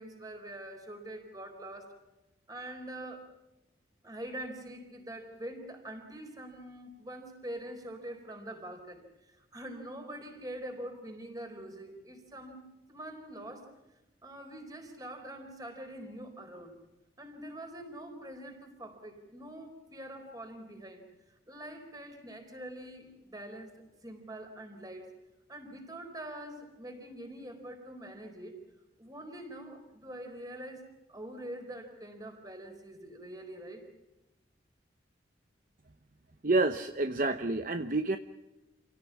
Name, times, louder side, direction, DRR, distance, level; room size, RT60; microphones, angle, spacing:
voice 1, 0.0-1.9 2.5-3.3 4.0-12.6 12.9-13.7 14.2-16.8 17.2-25.1 25.5-28.6 29.0-33.9, right 1 dB, 20° right, 5 dB, 4.3 m, -44 dB
voice 2, 36.4-38.2, right 2 dB, 45° right, 8 dB, 0.9 m, -28 dB
28.0 x 17.5 x 7.3 m, 1.0 s
head